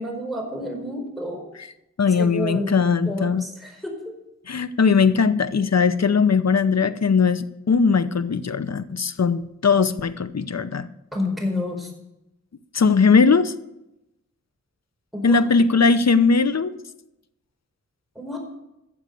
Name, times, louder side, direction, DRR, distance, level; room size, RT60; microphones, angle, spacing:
voice 1, 0.0-1.5 2.2-2.8 3.0-4.1 11.1-11.9 15.1-15.5 18.1-18.4, left 1 dB, ahead, 1 dB, 4.6 m, -29 dB
voice 2, 2.0-3.4 4.5-10.9 12.7-13.5 15.2-16.7, left 5 dB, 60° left, 13 dB, 0.8 m, -19 dB
13.5 x 7.4 x 6.7 m, 0.89 s
wide cardioid pair, 55°, 30 cm